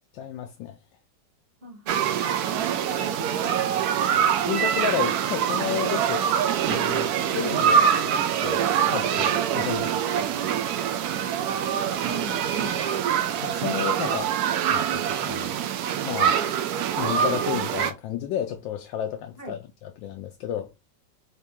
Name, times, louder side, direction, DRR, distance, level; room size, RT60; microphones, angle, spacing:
voice 1, 0.1-0.8 4.5-6.3 6.7-9.9 10.2-10.3 13.3-14.3 14.7-15.6 16.0-16.4 16.9-20.7, left 9 dB, 85° left, 1.3 m, -32 dB
voice 2, 1.6-2.0 2.3-4.0 9.7-9.8 11.7-12.9 19.4-19.6, right 3 dB, 35° right, 1.1 m, -39 dB
sound 1, 1.9-17.9, right 8 dB, 70° right, 1.0 m, -24 dB
4.4 x 2.8 x 3.4 m
omnidirectional pair, 2.0 m